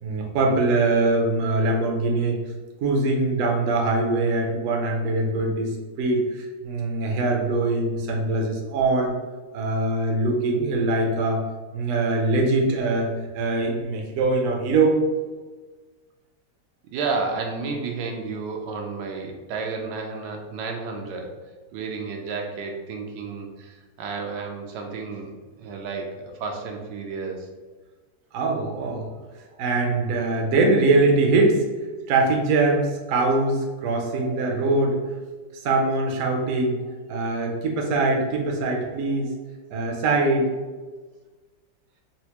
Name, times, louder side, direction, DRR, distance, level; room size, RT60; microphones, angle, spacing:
voice 1, 0.0-2.4 2.8-5.7 6.0-9.1 9.5-11.4 11.7-15.0 28.3-29.1 29.6-31.6 32.1-35.0 35.6-36.8 37.1-39.3 39.7-40.5, right 2 dB, 65° right, 0 dB, 0.8 m, -22 dB
voice 2, 16.9-21.3 21.7-27.5 29.5-29.6 34.2-34.4 39.3-39.4, right 4 dB, 85° right, 2 dB, 1.2 m, -32 dB
4.2 x 2.1 x 2.8 m, 1.3 s
omnidirectional pair, 1.9 m